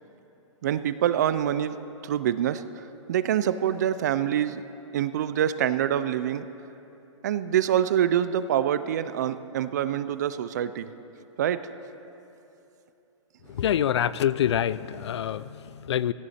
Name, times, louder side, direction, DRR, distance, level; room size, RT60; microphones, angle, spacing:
voice 1, 0.6-1.8 2.0-4.7 4.9-6.5 7.2-10.9 11.4-11.6, right 10 dB, 35° right, 13 dB, 0.4 m, -25 dB
voice 2, 13.5-16.1, left 10 dB, 60° left, 18 dB, 0.4 m, -26 dB
17.0 x 14.0 x 4.3 m, 2.9 s
hypercardioid pair, 170°, 16 cm